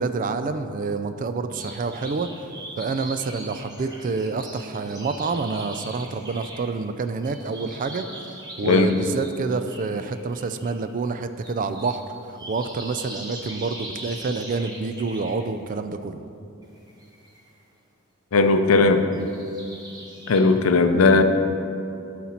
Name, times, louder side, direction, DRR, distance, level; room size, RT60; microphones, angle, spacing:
voice 1, 0.0-2.3 2.8-8.1 8.6-12.0 12.3-16.2, right 4 dB, 40° right, 10 dB, 0.3 m, -28 dB
sound 1, 1.5-6.9 7.2-10.8 11.1-15.4 16.6-17.6 18.9-20.4, right 1 dB, 20° right, 1.0 m, -41 dB
voice 2, 8.6-9.0 18.3-19.1 20.3-21.2, left 3 dB, 90° left, 8 dB, 0.5 m, -17 dB
11.5 x 4.2 x 4.3 m, 2.7 s
head